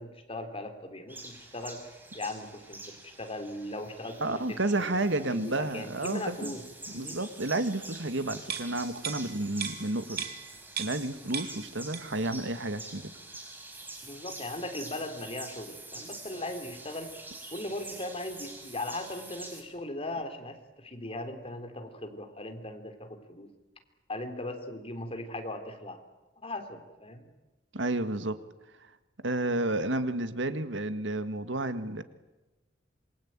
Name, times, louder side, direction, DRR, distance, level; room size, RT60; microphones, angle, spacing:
voice 1, 0.0-1.8 2.1-7.2 14.0-17.2 17.5-23.5 24.1-26.0 26.4-27.3, left 1 dB, 30° left, 7 dB, 3.5 m, -39 dB
sound 1, 1.1-19.6, right 2 dB, 10° right, 5.0 m, -46 dB
voice 2, 4.2-6.6 6.9-10.2 10.8-13.1 27.7-28.4 29.2-32.0, right 2 dB, 85° right, 10 dB, 1.9 m, -31 dB
sound 2, 8.5-11.1 11.3-12.3 12.6-12.8, right 7 dB, 60° right, 2.7 m, -38 dB
27.0 x 23.0 x 9.0 m, 1.1 s
head